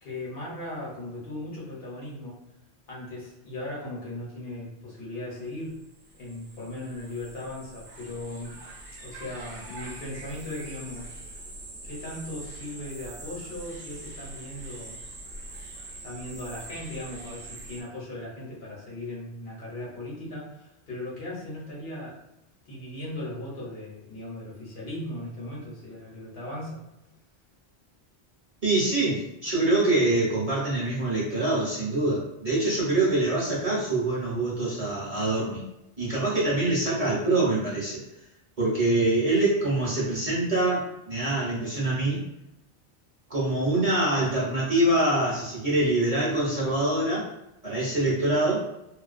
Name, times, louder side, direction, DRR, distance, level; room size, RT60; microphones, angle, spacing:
voice 1, 0.0-2.4 2.9-5.8 6.1-8.6 9.0-11.1 11.8-15.0 16.0-22.2 22.7-26.8, left 1 dB, 60° left, -5 dB, 1.0 m, -38 dB
sound 1, 5.4-5.5 5.7-17.8, right 2 dB, 70° right, 0.8 m, -43 dB
voice 2, 28.6-35.6 36.0-38.0 38.6-42.2 43.3-47.3 47.6-48.7, right 2 dB, 40° right, -6 dB, 0.7 m, -25 dB
2.4 x 2.2 x 2.4 m, 0.88 s
omnidirectional pair, 1.1 m